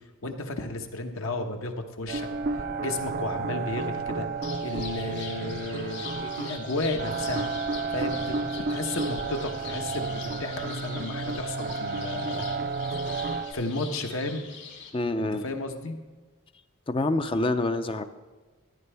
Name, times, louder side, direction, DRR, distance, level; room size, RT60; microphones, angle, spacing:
voice 1, 0.2-2.3 2.5-4.3 4.6-7.5 7.9-12.6 12.9-13.2 13.5-14.4 15.2-16.0, left 2 dB, 70° left, 4 dB, 1.2 m, -33 dB
sound 1, 2.1-13.5, right 4 dB, 45° right, 0.5 m, -32 dB
sound 2, 4.4-14.9, left 6 dB, 55° left, 1.9 m, -43 dB
voice 2, 14.9-15.4 16.9-18.0, left 2 dB, 25° left, 9 dB, 0.5 m, -26 dB
14.0 x 10.5 x 3.4 m, 1.3 s
head